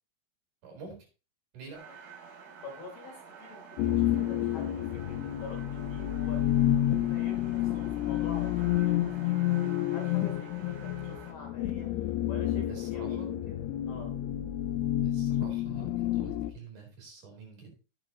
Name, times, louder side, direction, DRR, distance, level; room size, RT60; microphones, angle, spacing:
voice 1, 0.6-1.0 1.5-1.8 12.7-13.3 15.0-17.8, right 5 dB, 50° right, 2 dB, 5.7 m, -47 dB
sound 1, 1.7-11.3, right 5 dB, 70° right, 4.3 m, -50 dB
voice 2, 2.6-9.0 9.2-11.9 12.3-14.1, left 2 dB, 70° left, 0 dB, 5.7 m, -47 dB
sound 2, 3.8-16.5, left 12 dB, 90° left, 2.9 m, -29 dB
17.0 x 7.1 x 3.1 m, 0.34 s
omnidirectional pair, 4.6 m